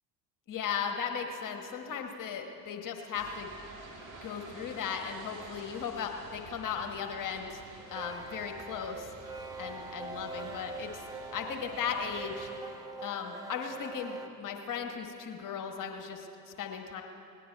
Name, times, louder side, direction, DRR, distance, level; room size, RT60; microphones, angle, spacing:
voice 1, 0.5-3.5 4.2-7.6 7.9-9.3 9.6-12.5 13.0-17.0, left 7 dB, 40° left, 4 dB, 1.3 m, -37 dB
sound 1, 3.1-12.6, right 3 dB, 40° right, 2.6 m, -50 dB
sound 2, 7.8-14.3, right 3 dB, 10° right, 0.5 m, -43 dB
18.5 x 9.9 x 4.5 m, 2.9 s
hypercardioid pair, 70°, 48 cm